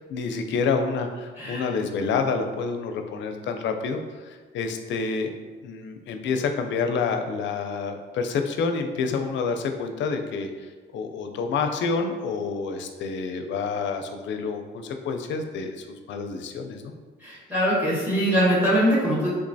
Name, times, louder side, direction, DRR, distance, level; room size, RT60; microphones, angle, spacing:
voice 1, 0.1-5.3 5.6-16.9, left 5 dB, 65° left, 6 dB, 0.4 m, -28 dB
voice 2, 17.2-19.3, equal, 10° right, -8 dB, 1.3 m, -22 dB
3.5 x 3.0 x 2.7 m, 1.4 s
cardioid pair, 90°, 20 cm